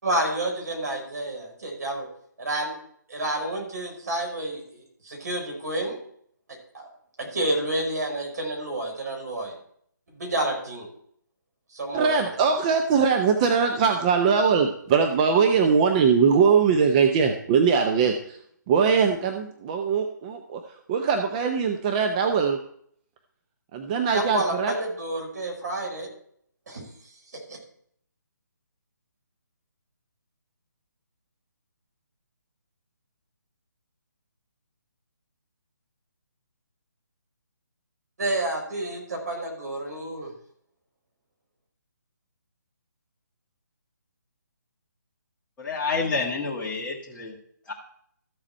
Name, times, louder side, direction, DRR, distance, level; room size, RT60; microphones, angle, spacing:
voice 1, 0.0-2.1 2.4-2.7 3.1-6.0 6.7-6.9 7.2-9.5 10.1-10.9 11.7-12.2 24.1-26.1 26.7-26.8 27.3-27.6 38.2-40.3, right 1 dB, 60° right, 1 dB, 4.7 m, -29 dB
voice 2, 11.9-18.4 18.7-22.6 23.7-24.7, right 6 dB, 25° right, 4 dB, 0.7 m, -21 dB
voice 3, 45.6-47.3 47.7-47.8, left 4 dB, 10° left, -8 dB, 1.7 m, -28 dB
13.5 x 7.3 x 4.4 m, 0.65 s
figure-of-eight pair, 145°, 10 cm